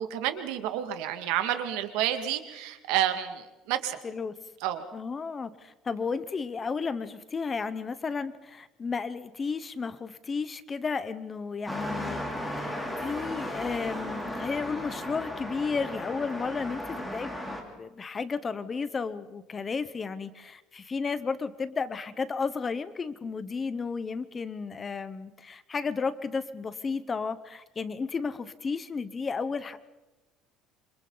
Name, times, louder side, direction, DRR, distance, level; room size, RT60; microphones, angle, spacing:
voice 1, 0.0-4.0 4.6-4.8, right 11 dB, 85° right, 8 dB, 2.0 m, -30 dB
voice 2, 4.0-4.4 4.9-29.8, left 5 dB, 20° left, 14 dB, 0.9 m, -33 dB
sound 1, 11.7-17.6, equal, 5° left, 3.1 m, -35 dB
27.5 x 26.0 x 4.0 m, 1.1 s
cardioid pair, 155°, 0 cm